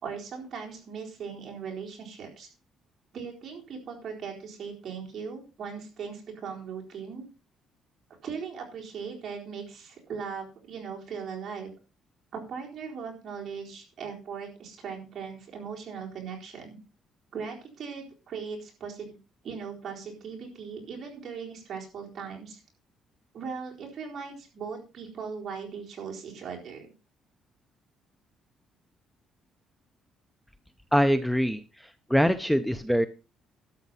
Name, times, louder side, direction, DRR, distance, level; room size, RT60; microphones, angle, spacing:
voice 1, 0.0-2.5 3.1-7.3 8.2-11.7 12.3-16.8 17.3-19.1 19.4-22.6 23.3-26.9, right 6 dB, 45° right, -1 dB, 4.2 m, -39 dB
voice 2, 30.9-31.6 32.1-33.1, equal, ahead, 11 dB, 0.5 m, -23 dB
12.0 x 7.2 x 5.5 m, 0.33 s
cardioid pair, 155°, 0 cm